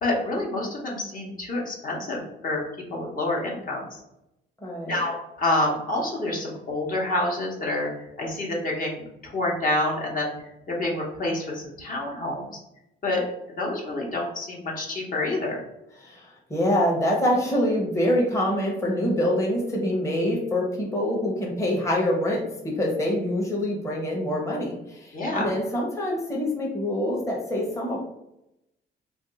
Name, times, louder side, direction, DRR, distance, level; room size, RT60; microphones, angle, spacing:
voice 1, 0.0-2.6 2.9-4.0 4.8-7.9 8.2-10.3 10.7-12.5 13.0-13.2 13.6-15.6 25.1-25.5, left 2 dB, 45° left, -2 dB, 1.0 m, -28 dB
voice 2, 4.6-5.0 16.0-28.0, left 1 dB, 15° left, -3 dB, 0.8 m, -25 dB
2.6 x 2.3 x 3.9 m, 0.85 s
cardioid pair, 90°, 20 cm